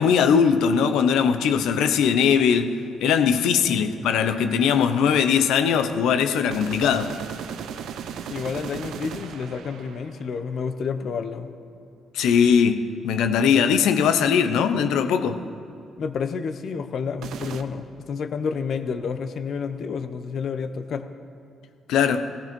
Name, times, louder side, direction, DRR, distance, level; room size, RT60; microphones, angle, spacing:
voice 1, 0.0-2.7 3.0-7.1 12.1-15.4 21.9-22.3, left 7 dB, 85° left, 0.9 m, -20 dB
voice 2, 3.7-4.1 8.3-11.5 16.0-21.1, left 5 dB, 60° left, 0.9 m, -30 dB
sound 1, 6.5-10.5 17.2-17.6, right 8 dB, 80° right, 0.8 m, -36 dB
16.0 x 15.0 x 5.4 m
cardioid pair, 90°, 0 cm